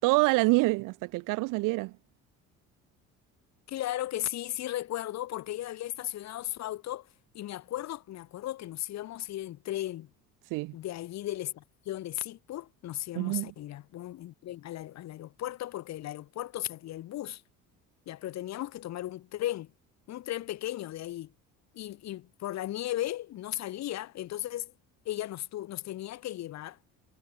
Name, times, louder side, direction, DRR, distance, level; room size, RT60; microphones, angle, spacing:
voice 1, 0.0-1.9 10.5-10.7 13.2-13.5, right 24 dB, 85° right, 3.8 m, -26 dB
voice 2, 3.7-7.1 7.3-10.1 10.7-17.4 18.1-19.7 20.1-21.3 21.7-24.7 25.1-26.8, left 14 dB, 60° left, 2.5 m, -36 dB
cardioid pair, 130°, 31 cm